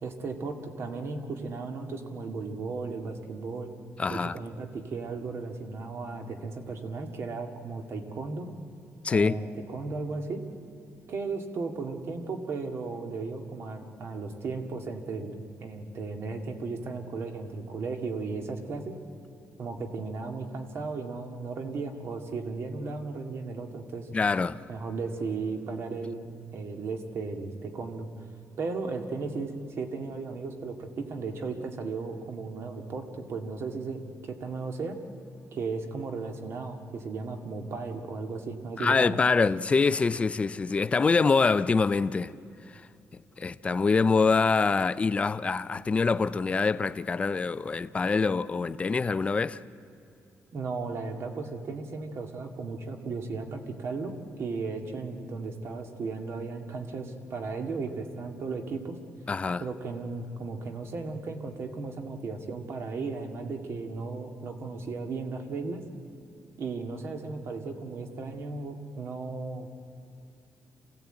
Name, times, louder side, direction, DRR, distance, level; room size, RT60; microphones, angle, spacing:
voice 1, 0.0-3.7 4.1-8.5 9.1-10.4 11.1-18.9 19.6-24.1 24.7-28.1 28.6-35.0 35.5-39.2 50.5-59.0 59.6-65.8 66.6-69.7, right 4 dB, 55° right, 2.0 m, -35 dB
voice 2, 4.0-4.4 9.0-9.4 24.1-24.6 38.8-42.3 42.7-42.8 43.1-49.6 59.3-59.6, left 4 dB, 25° left, 0.5 m, -25 dB
26.5 x 16.5 x 9.0 m
wide cardioid pair, 165°, 5 cm